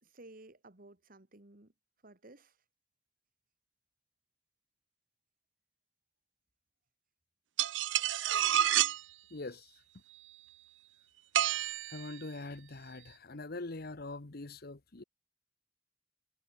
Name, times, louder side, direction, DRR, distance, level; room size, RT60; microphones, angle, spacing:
voice 1, 0.0-1.7 2.0-2.6, right 2 dB, 50° right, 2.0 m, -55 dB
sound 1, 7.6-9.0 11.3-12.1, right 11 dB, 85° right, 0.5 m, -29 dB
voice 2, 9.3-9.7 11.9-15.0, left 2 dB, 55° left, 1.2 m, -43 dB
head